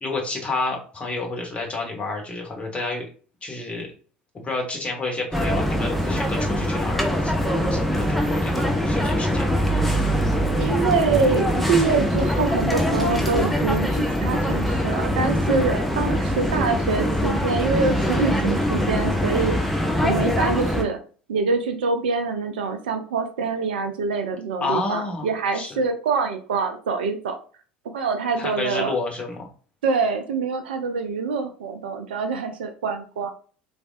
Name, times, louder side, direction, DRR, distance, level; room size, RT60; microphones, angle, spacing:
voice 1, 0.0-3.0 3.4-3.9 4.4-9.6 24.6-25.3 25.5-25.8 28.4-29.5, left 3 dB, 25° left, 0 dB, 1.1 m, -30 dB
sound 1, 5.3-20.8, equal, ahead, 0.6 m, -23 dB
voice 2, 10.6-19.7 20.0-21.0 21.3-27.4 27.9-29.0 29.8-33.3, right 4 dB, 70° right, 7 dB, 0.4 m, -25 dB
3.2 x 2.5 x 2.4 m, 0.40 s
figure-of-eight pair, 70°, 6 cm